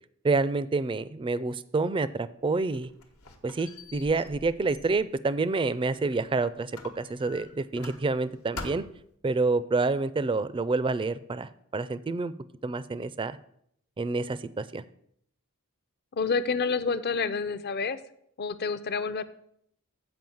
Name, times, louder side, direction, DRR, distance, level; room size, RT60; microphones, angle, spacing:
voice 1, 0.2-2.9 3.4-8.8 9.2-12.3 12.6-13.4 14.0-14.8, right 3 dB, 25° right, 16 dB, 0.3 m, -28 dB
Squeak, 2.5-6.3 6.7-8.3 8.6-9.1, left 3 dB, 90° left, 1.2 m, -45 dB
voice 2, 16.1-18.0 18.4-19.2, left 4 dB, 50° left, 13 dB, 0.5 m, -28 dB
7.7 x 5.1 x 7.0 m, 0.70 s
head